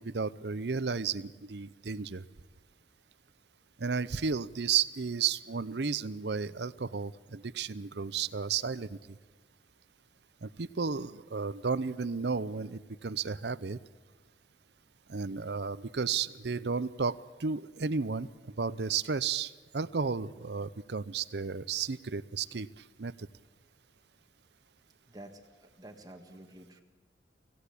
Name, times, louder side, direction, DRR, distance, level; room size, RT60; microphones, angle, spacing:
voice 1, 0.0-2.2 3.8-9.0 10.4-13.8 15.1-22.7 23.0-23.3, right 5 dB, 65° right, 16 dB, 0.7 m, -33 dB
voice 2, 25.1-26.8, right 1 dB, 20° right, 5 dB, 1.6 m, -50 dB
25.0 x 17.0 x 8.5 m, 1.4 s
head